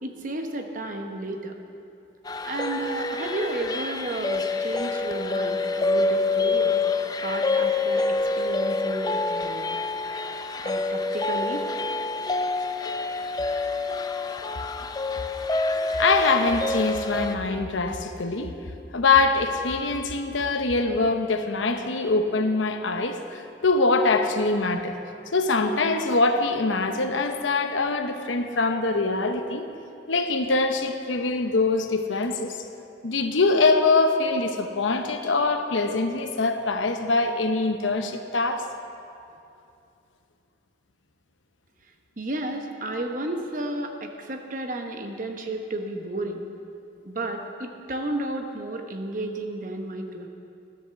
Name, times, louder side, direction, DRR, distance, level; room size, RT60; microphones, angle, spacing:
voice 1, 0.0-1.5 2.4-6.8 7.2-9.8 10.5-11.6 42.2-46.5 47.0-50.3, right 1 dB, 45° right, 4 dB, 0.9 m, -32 dB
sound 1, 2.3-17.3, left 3 dB, 20° left, 0.4 m, -27 dB
voice 2, 16.0-18.5 18.9-25.0 25.3-29.7 30.1-32.6 33.0-38.7, left 3 dB, 85° left, 6 dB, 0.9 m, -23 dB
12.5 x 8.0 x 6.9 m, 2.6 s
head